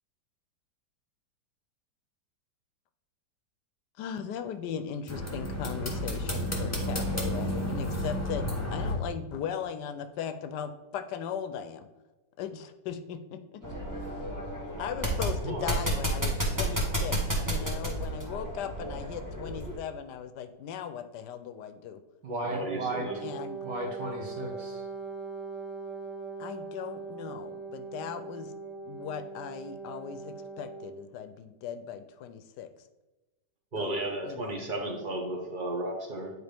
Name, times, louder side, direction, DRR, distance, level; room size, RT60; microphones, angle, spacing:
voice 1, 4.0-11.9 12.4-13.6 14.8-22.0 22.9-23.6 26.4-28.5 28.9-32.7 33.8-34.6, left 8 dB, 75° left, 9 dB, 1.1 m, -38 dB
sound 1, 5.1-8.9, equal, 10° left, 0.9 m, -31 dB
sound 2, 13.6-19.8, right 1 dB, 10° right, 1.2 m, -31 dB
voice 2, 15.4-15.8 22.4-23.2 33.7-36.3, right 1 dB, 35° right, 0 dB, 1.1 m, -34 dB
voice 3, 22.2-23.1 23.6-24.8, right 2 dB, 75° right, 1 dB, 2.0 m, -34 dB
Wind instrument woodwind instrument, 22.9-31.1, right 4 dB, 55° right, 1.2 m, -41 dB
9.6 x 4.3 x 3.4 m, 1.1 s
omnidirectional pair, 1.9 m